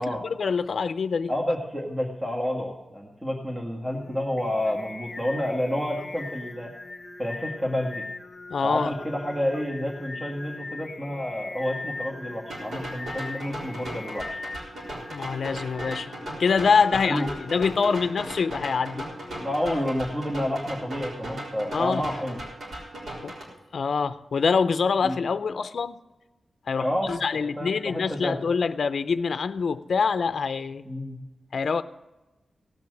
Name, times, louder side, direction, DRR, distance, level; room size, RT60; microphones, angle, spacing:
voice 1, 0.0-1.3 8.5-8.9 15.1-16.1 16.4-19.1 21.7-22.1 23.2-23.4 23.7-26.0 26.7-30.8 31.5-31.8, left 5 dB, 70° left, 0.5 m, -25 dB
voice 2, 1.3-6.7 7.2-8.0 8.6-14.4 17.0-17.3 19.4-22.4 25.0-25.2 26.8-28.4 30.8-31.2, left 1 dB, 20° right, 1.7 m, -29 dB
Singing, 3.9-20.1, left 3 dB, 30° left, 0.9 m, -41 dB
sound 1, 12.5-23.4, right 1 dB, 80° right, 4.2 m, -38 dB
17.5 x 6.0 x 7.7 m
wide cardioid pair, 135°, 0 cm